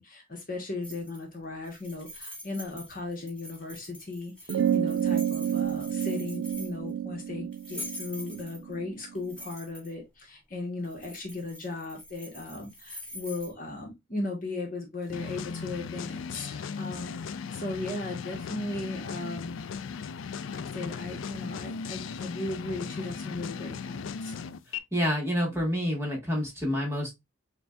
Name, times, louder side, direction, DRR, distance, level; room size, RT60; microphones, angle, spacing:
voice 1, 0.0-19.5 20.5-24.4, left 2 dB, 40° left, 1.0 m, -37 dB
sound 1, 0.8-1.3 1.6-6.9 7.5-8.7 9.1-9.9 10.8-13.5, left 1 dB, 5° left, 1.5 m, -44 dB
sound 2, 4.5-9.3, right 9 dB, 65° right, 0.3 m, -30 dB
sound 3, 15.1-24.8, left 6 dB, 60° left, 0.3 m, -37 dB
voice 2, 24.9-27.1, equal, 10° right, 1.2 m, -28 dB
6.7 x 2.3 x 2.3 m
head